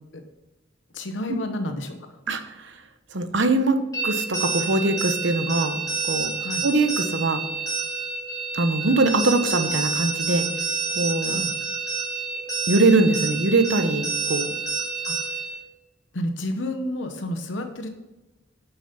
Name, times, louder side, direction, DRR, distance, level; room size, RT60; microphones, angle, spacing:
voice 1, 0.9-2.2 6.4-6.6 11.2-11.5 15.0-15.4 16.1-17.9, left 1 dB, 85° left, 6 dB, 1.0 m, -30 dB
voice 2, 2.3-2.8 3.1-3.8 4.0-5.8 6.0-6.3 6.6-7.4 8.5-10.5 10.9-11.4 12.7-14.6, right 2 dB, 80° right, 8 dB, 1.0 m, -22 dB
sound 1, 3.9-15.5, right 5 dB, 20° left, 2.9 m, -28 dB
9.0 x 6.1 x 5.4 m, 1.0 s
head